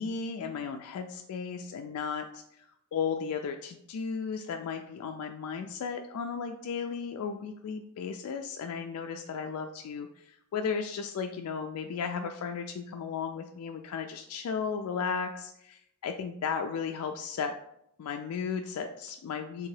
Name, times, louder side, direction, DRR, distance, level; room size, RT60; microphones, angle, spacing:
voice 1, 0.0-2.7 2.9-17.5 18.0-19.7, left 6 dB, 80° left, 5 dB, 0.3 m, -35 dB
3.5 x 2.8 x 4.6 m, 0.77 s
head